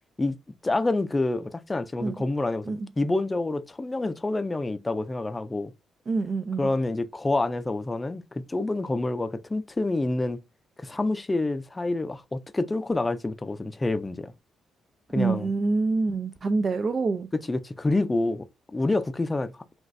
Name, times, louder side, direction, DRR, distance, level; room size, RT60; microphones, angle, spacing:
voice 1, 0.6-5.7 6.6-10.4 10.8-14.3 15.1-15.5 17.3-19.6, left 2 dB, 20° left, 0.5 m, -27 dB
voice 2, 6.1-6.7 15.2-17.3, right 3 dB, 40° right, 0.4 m, -26 dB
6.0 x 2.4 x 2.6 m
cardioid pair, 90°, 0 cm